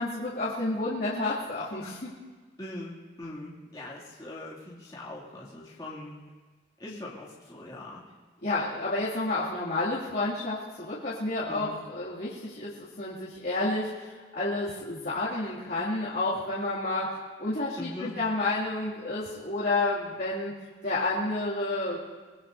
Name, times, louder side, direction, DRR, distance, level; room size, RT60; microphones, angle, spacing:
voice 1, 0.0-2.1 8.4-20.5 20.8-22.0, left 2 dB, 55° left, -9 dB, 2.5 m, -30 dB
voice 2, 2.6-6.2 6.8-8.0 11.5-11.7 17.8-18.2, left 1 dB, 20° left, -7 dB, 2.5 m, -41 dB
25.0 x 19.0 x 2.7 m, 1.4 s
head